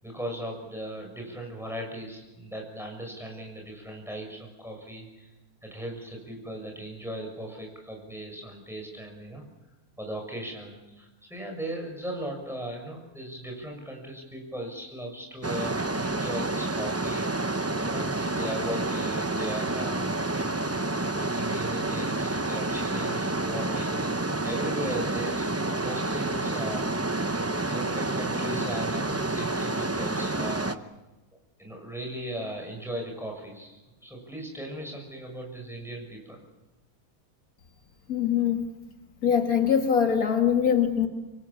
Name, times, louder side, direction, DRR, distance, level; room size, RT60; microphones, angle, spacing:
voice 1, 0.0-5.3 5.6-9.4 10.0-17.3 17.8-20.6 21.1-27.1 27.7-30.8 31.6-36.4, right 1 dB, ahead, 1 dB, 6.9 m, -38 dB
sound 1, 15.4-30.8, right 2 dB, 15° right, 0.5 m, -29 dB
voice 2, 38.1-38.6 39.2-41.1, left 8 dB, 70° left, 4 dB, 2.2 m, -23 dB
26.0 x 23.5 x 7.2 m, 1.1 s
omnidirectional pair, 1.6 m